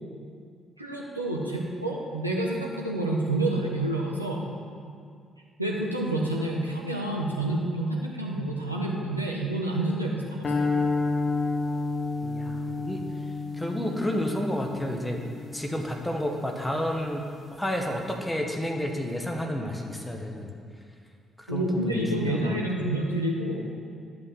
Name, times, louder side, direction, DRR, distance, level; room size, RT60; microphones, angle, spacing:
voice 1, 0.8-4.5 5.6-10.7 21.5-23.7, right 1 dB, 90° right, -3 dB, 1.0 m, -28 dB
sound 1, 10.4-16.8, left 3 dB, 40° left, 1.3 m, -30 dB
voice 2, 12.2-13.0 13.5-15.2 15.5-17.2 17.6-20.5 21.4-22.6, equal, 10° left, 1 dB, 1.5 m, -30 dB
11.5 x 6.1 x 6.3 m, 2.2 s
figure-of-eight pair, 40°, 0 cm